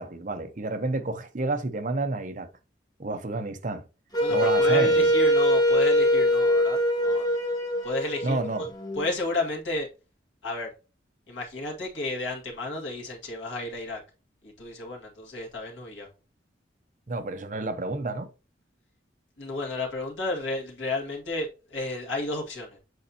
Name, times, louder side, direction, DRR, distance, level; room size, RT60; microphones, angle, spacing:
voice 1, 0.0-2.5 3.0-3.8 4.3-5.1 8.2-8.6 17.1-18.3, right 2 dB, 40° right, 0.7 m, -30 dB
Wind instrument woodwind instrument, 4.1-9.1, equal, 20° left, 1.3 m, -23 dB
voice 2, 4.2-7.3 7.8-8.4 9.0-9.9 10.4-10.7 11.3-14.0 14.4-16.1 19.4-22.8, left 2 dB, 85° left, 1.9 m, -32 dB
7.8 x 4.3 x 2.8 m
head